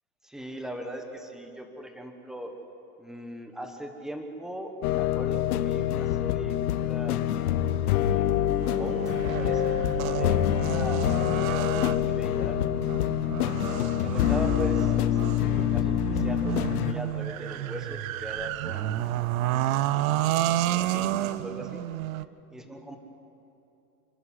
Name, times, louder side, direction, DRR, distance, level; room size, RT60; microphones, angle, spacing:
voice 1, 0.2-2.5 3.0-7.2 7.8-12.9 14.0-19.5 20.1-21.9 22.5-23.0, equal, ahead, 4 dB, 1.2 m, -40 dB
sound 1, 4.8-16.9, left 11 dB, 70° left, 1.1 m, -26 dB
sound 2, 8.6-22.2, right 13 dB, 60° right, 0.8 m, -31 dB
28.0 x 12.0 x 9.8 m, 2.9 s
supercardioid pair, 160°, 47 cm